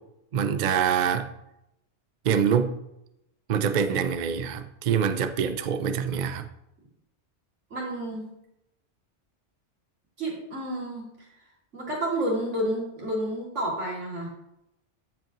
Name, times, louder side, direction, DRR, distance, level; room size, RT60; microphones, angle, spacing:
voice 1, 0.3-1.3 2.2-2.7 3.5-6.5, right 7 dB, 50° right, 9 dB, 0.6 m, -25 dB
voice 2, 7.7-8.3 10.2-11.0 11.7-14.3, right 1 dB, 85° right, -4 dB, 2.9 m, -30 dB
14.0 x 5.2 x 3.0 m, 0.83 s
omnidirectional pair, 1.2 m